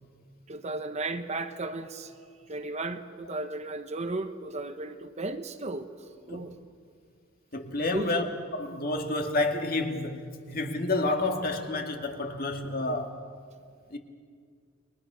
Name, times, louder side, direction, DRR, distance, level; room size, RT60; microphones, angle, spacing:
voice 1, 0.5-2.1 2.5-5.9 6.3-6.6 7.9-8.3 12.8-13.0, right 2 dB, 35° right, 9 dB, 0.9 m, -35 dB
voice 2, 7.5-8.3 8.5-13.2 13.9-14.0, left 2 dB, 45° left, 4 dB, 2.1 m, -29 dB
30.0 x 22.0 x 6.2 m, 2.1 s
head